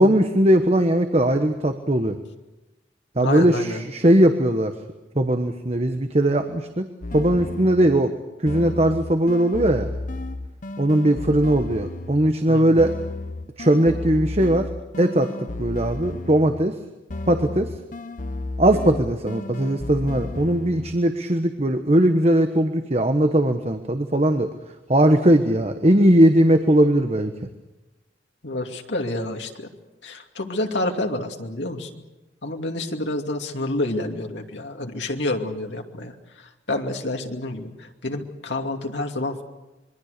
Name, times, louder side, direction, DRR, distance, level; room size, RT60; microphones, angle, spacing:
voice 1, 0.0-2.2 3.2-4.7 5.1-6.9 7.1-8.1 8.4-9.9 10.8-12.9 13.6-14.7 15.0-15.3 15.6-16.7 17.3-17.7 18.6-24.5 24.9-27.3, right 1 dB, 35° right, 7 dB, 1.2 m, -19 dB
voice 2, 3.2-3.8 12.5-12.8 28.4-29.7 30.0-32.0 32.4-39.4, left 2 dB, 90° left, 3 dB, 2.6 m, -29 dB
sound 1, 7.0-8.1 8.5-12.4 12.8-16.7 17.1-21.1, left 2 dB, 45° left, 0.8 m, -33 dB
26.0 x 23.0 x 6.7 m, 1.1 s
head